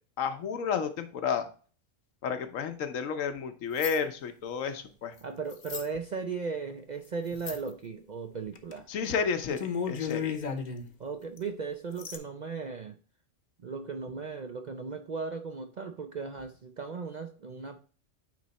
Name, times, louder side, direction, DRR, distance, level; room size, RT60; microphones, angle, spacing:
voice 1, 0.2-1.5 2.2-5.1 8.9-10.4, left 6 dB, 85° left, 8 dB, 1.2 m, -31 dB
sound 1, 3.8-4.0 5.5-5.9 7.4-7.7 8.5-8.8 9.0-9.1 9.5-10.9 11.4-11.5 12.0-12.2, left 6 dB, 40° left, 0.8 m, -34 dB
voice 2, 5.2-8.9 11.0-13.0 13.6-17.8, right 5 dB, 55° right, 6 dB, 0.5 m, -37 dB
9.2 x 3.1 x 4.1 m, 0.40 s
omnidirectional pair, 1.3 m